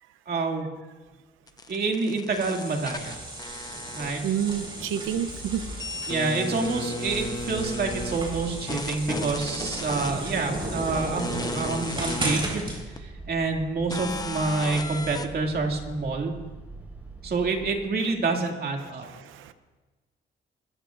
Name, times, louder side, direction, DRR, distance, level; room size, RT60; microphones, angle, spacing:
voice 1, 0.3-0.7 1.7-3.2 4.0-4.2 6.1-16.3 17.2-19.0, right 3 dB, 50° right, 2 dB, 2.4 m, -28 dB
sound 1, 1.5-4.6 4.9-8.2 8.7-10.1 10.9-12.4 13.0-13.1 13.9-15.3, left 2 dB, 20° left, 0.9 m, -35 dB
sound 2, 2.4-12.8, right 1 dB, 25° right, 4.7 m, -35 dB
voice 2, 4.2-5.6 19.3-19.5, right 9 dB, 90° right, 11 dB, 0.7 m, -28 dB
sound 3, 7.1-17.8, right 3 dB, 10° right, 4.1 m, -43 dB
22.0 x 14.5 x 2.6 m, 1.3 s
cardioid pair, 90°, 20 cm